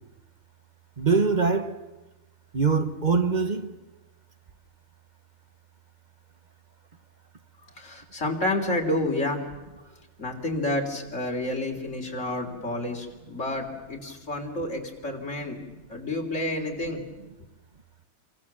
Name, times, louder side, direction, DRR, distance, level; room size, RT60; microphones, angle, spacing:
voice 1, 1.0-1.8 2.5-3.8, right 4 dB, 35° right, 1.2 m, -23 dB
voice 2, 7.8-9.5 10.2-15.6 15.9-17.0, left 1 dB, 55° left, 3.9 m, -29 dB
28.5 x 23.5 x 7.5 m
omnidirectional pair, 1.5 m